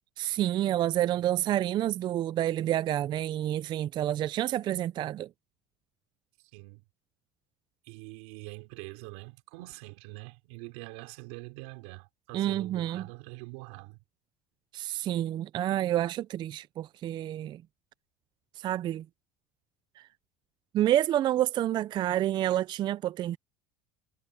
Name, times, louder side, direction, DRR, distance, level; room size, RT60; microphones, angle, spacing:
voice 1, 0.2-5.3 12.3-13.1 14.7-17.6 18.6-19.1 20.0-20.1 20.7-23.4, right 12 dB, 35° right, 0.3 m, -28 dB
voice 2, 7.8-14.0, right 24 dB, 85° right, 3.4 m, -44 dB
cardioid pair, 135°, 13 cm